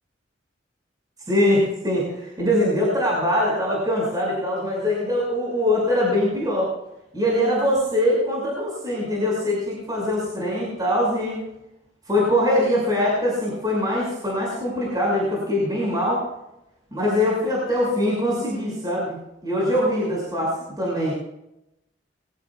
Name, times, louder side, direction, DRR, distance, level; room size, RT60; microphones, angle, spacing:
voice 1, 1.3-6.7 7.1-11.4 12.1-16.2 16.9-19.2 19.4-21.1, left 1 dB, 20° right, -4 dB, 6.1 m, -22 dB
22.5 x 16.5 x 2.4 m, 0.87 s
head